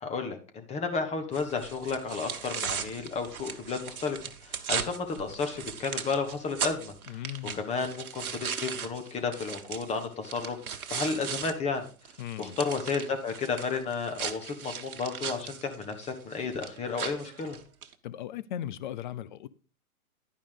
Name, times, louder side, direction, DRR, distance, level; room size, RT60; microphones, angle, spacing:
voice 1, 0.0-4.2 4.4-7.2 7.5-10.6 10.9-11.9 12.4-17.6, left 4 dB, 15° left, 1.1 m, -32 dB
sound 1, 1.3-11.5 11.9-17.9, right 7 dB, 75° right, 1.2 m, -38 dB
voice 2, 7.1-7.7 12.2-12.6 18.0-19.5, left 11 dB, 35° left, 0.5 m, -38 dB
11.0 x 5.2 x 5.0 m
hypercardioid pair, 135°, 43 cm